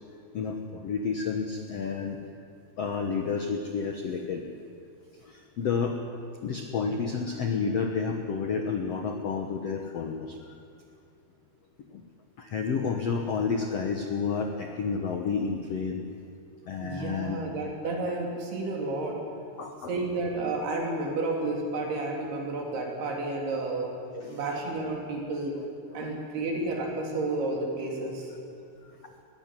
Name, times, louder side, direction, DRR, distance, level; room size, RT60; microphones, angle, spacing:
voice 1, 0.3-2.2 2.8-4.5 5.3-6.0 6.4-10.4 12.4-16.0 16.7-17.4 19.6-19.9 24.2-24.4 26.0-26.1, left 5 dB, 70° left, 4 dB, 1.5 m, -30 dB
voice 2, 16.8-19.2 19.9-25.5 25.9-28.3, right 2 dB, 75° right, 0 dB, 5.2 m, -31 dB
20.5 x 17.0 x 9.9 m, 2.5 s
omnidirectional pair, 4.7 m